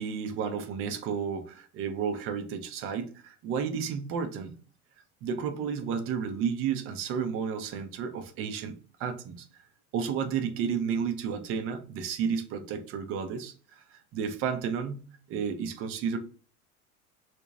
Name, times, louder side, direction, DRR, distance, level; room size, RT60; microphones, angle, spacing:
voice 1, 0.0-4.5 5.2-9.4 9.9-16.2, right 6 dB, 30° right, 7 dB, 0.5 m, -32 dB
2.7 x 2.2 x 3.6 m, 0.39 s
figure-of-eight pair, 75°, 45 cm